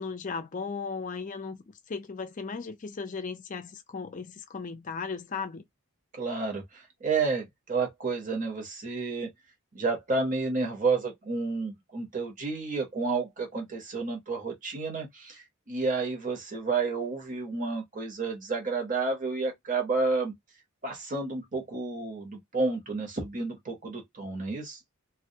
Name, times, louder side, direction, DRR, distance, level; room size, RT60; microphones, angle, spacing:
voice 1, 0.0-5.6, left 5 dB, 40° left, 0.4 m, -36 dB
voice 2, 6.1-9.3 9.7-20.3 20.8-24.8, right 4 dB, 40° right, 0.9 m, -30 dB
2.2 x 2.1 x 2.7 m
head